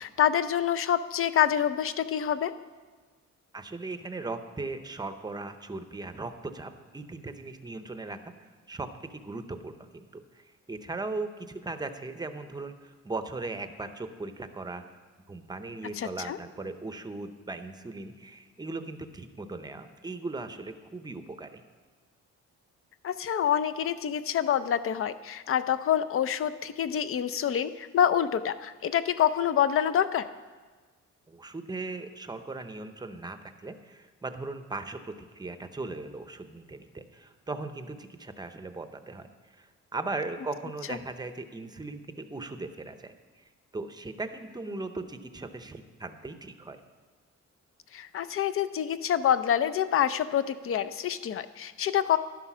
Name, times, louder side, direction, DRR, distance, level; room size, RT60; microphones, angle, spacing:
voice 1, 0.0-2.5 16.0-16.4 23.0-30.3 47.9-52.2, left 9 dB, 50° left, 12 dB, 0.5 m, -27 dB
voice 2, 3.5-14.8 15.3-21.6 31.3-46.8, right 3 dB, 15° right, 9 dB, 0.7 m, -38 dB
12.0 x 9.9 x 6.1 m, 1.4 s
cardioid pair, 145°, 29 cm